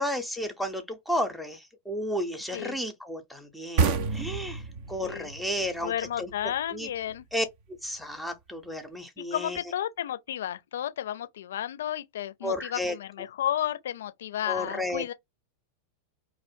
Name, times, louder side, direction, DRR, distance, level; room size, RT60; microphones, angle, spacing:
voice 1, 0.0-4.6 4.9-6.3 6.7-6.9 7.3-7.5 7.8-9.6 12.4-13.0 14.5-15.0, left 1 dB, ahead, 0.6 m, -32 dB
sound 1, 3.8-7.2, right 5 dB, 45° right, 0.4 m, -29 dB
voice 2, 5.8-7.3 9.2-15.1, left 11 dB, 60° left, 0.4 m, -32 dB
2.5 x 2.0 x 2.5 m
figure-of-eight pair, 90°, 0 cm